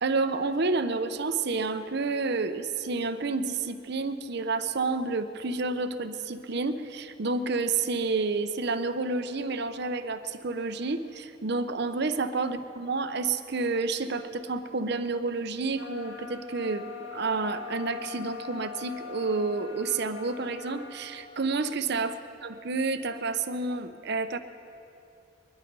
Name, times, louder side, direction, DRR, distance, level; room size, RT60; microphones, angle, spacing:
voice 1, 0.0-22.1 22.4-24.4, right 3 dB, 60° right, 10 dB, 0.8 m, -29 dB
sound 1, 15.7-21.3, left 5 dB, 60° left, 1.9 m, -42 dB
22.5 x 11.5 x 5.4 m, 2.6 s
head